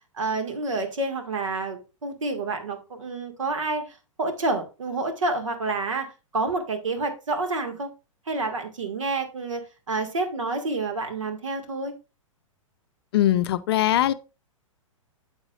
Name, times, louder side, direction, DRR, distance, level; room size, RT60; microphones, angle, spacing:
voice 1, 0.2-6.1 6.3-7.9 8.3-9.6 9.9-11.9, right 3 dB, 65° right, 1.9 m, -28 dB
voice 2, 13.1-14.1, left 13 dB, 45° left, 0.5 m, -21 dB
9.6 x 7.4 x 2.4 m
figure-of-eight pair, 105°, 17 cm